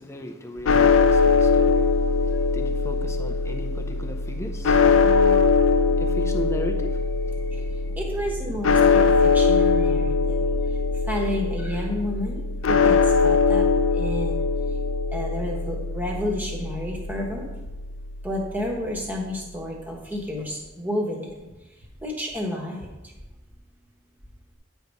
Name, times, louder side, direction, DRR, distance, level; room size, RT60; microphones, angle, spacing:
voice 1, 0.0-8.0, left 1 dB, 15° left, 0.5 m, -37 dB
sound 1, 0.7-18.9, left 4 dB, 85° left, 0.4 m, -22 dB
voice 2, 8.0-10.5 11.1-13.7 13.9-14.5 15.1-17.4 18.2-21.3 22.0-22.9, left 1 dB, 10° right, 1.1 m, -30 dB
9.2 x 3.5 x 5.3 m
head